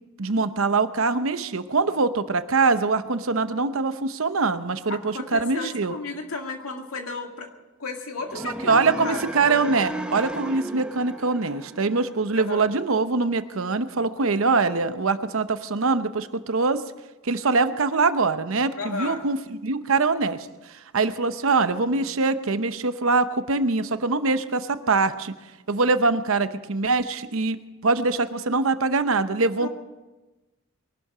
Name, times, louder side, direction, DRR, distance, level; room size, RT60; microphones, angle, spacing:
voice 1, 0.2-5.9 8.4-16.9 17.2-19.4 19.6-20.5 20.9-25.3 25.7-27.6 27.8-29.7, right 3 dB, 65° right, 11 dB, 0.8 m, -23 dB
voice 2, 4.9-7.5 7.8-9.2 12.3-12.7 18.8-19.3 29.5-29.7, left 3 dB, 75° left, 3 dB, 2.2 m, -33 dB
sound 1, 8.2-12.4, right 1 dB, 5° right, 0.7 m, -35 dB
22.0 x 12.0 x 5.0 m, 1.1 s
head